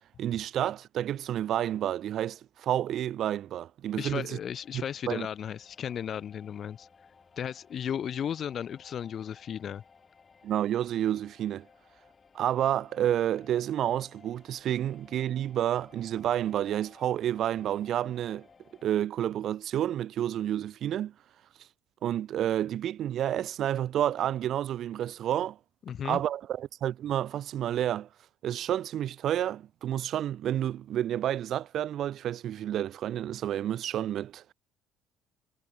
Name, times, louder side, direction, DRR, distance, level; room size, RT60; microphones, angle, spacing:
voice 1, 0.2-4.4 4.7-5.3 10.4-11.7 12.3-18.5 18.8-21.1 22.0-25.6 26.0-28.1 28.4-34.4, right 11 dB, 50° right, 0.6 m, -30 dB
voice 2, 4.0-6.9 7.4-9.8 25.9-26.2, left 9 dB, 40° left, 0.6 m, -35 dB
sound 1, 4.3-19.0, left 5 dB, 20° left, 1.9 m, -59 dB
cardioid pair, 150°, 0 cm